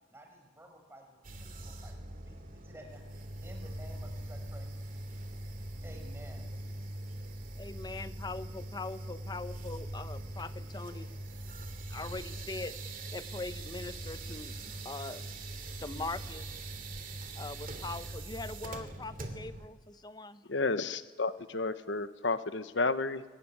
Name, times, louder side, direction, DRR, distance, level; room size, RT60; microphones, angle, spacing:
voice 1, 0.1-5.0 5.8-6.5, equal, 15° right, 3 dB, 5.5 m, -53 dB
sound 1, 1.2-19.7, right 1 dB, 45° right, 2.8 m, -42 dB
voice 2, 7.6-11.1 11.9-15.2 15.8-16.6 17.3-20.4, left 3 dB, 20° left, 13 dB, 0.8 m, -42 dB
voice 3, 20.5-23.2, left 3 dB, 70° left, 12 dB, 1.1 m, -31 dB
24.0 x 18.0 x 10.0 m, 1.3 s
head